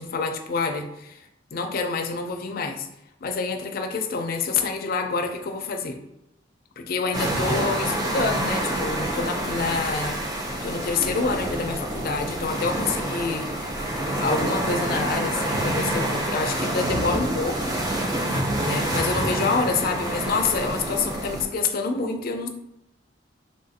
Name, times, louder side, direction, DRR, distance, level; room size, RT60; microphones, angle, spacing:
voice 1, 0.0-2.9 3.2-6.0 6.8-13.9 14.2-17.7 18.6-22.5, left 4 dB, 50° left, 5 dB, 0.4 m, -27 dB
sound 1, 7.1-21.4, right 1 dB, 20° right, 0.5 m, -27 dB
3.5 x 2.4 x 2.6 m, 0.84 s
head